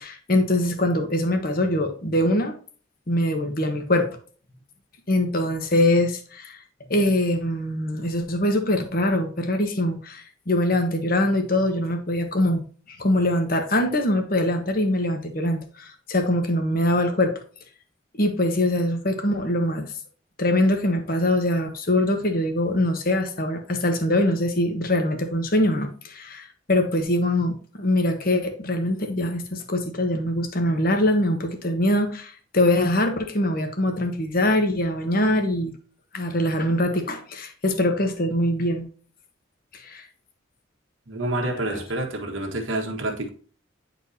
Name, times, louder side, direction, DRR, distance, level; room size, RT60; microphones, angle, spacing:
voice 1, 0.0-2.5 3.1-4.1 5.1-6.6 6.9-12.6 13.0-17.3 18.2-19.9 20.4-35.7 36.1-38.9 39.7-40.1 41.3-41.8, left 1 dB, 45° left, 1.1 m, -23 dB
voice 2, 41.1-43.3, right 2 dB, 85° right, 1.5 m, -28 dB
9.7 x 4.5 x 2.7 m
head